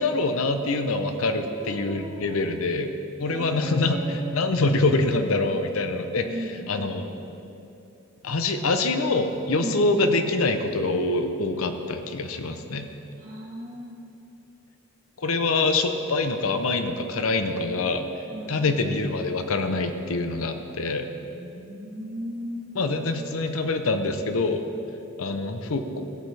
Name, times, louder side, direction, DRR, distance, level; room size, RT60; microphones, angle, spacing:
voice 1, 0.0-2.9 3.2-7.1 8.2-12.9 15.2-18.1 18.5-21.1 22.7-24.6 25.2-26.0, left 3 dB, 80° left, 7 dB, 0.7 m, -25 dB
voice 2, 1.1-2.5 3.2-4.3 6.1-7.3 9.6-9.8 13.2-13.9 18.3-18.8 21.2-22.7, equal, 35° right, -6 dB, 2.5 m, -37 dB
16.5 x 8.3 x 3.4 m, 2.8 s
head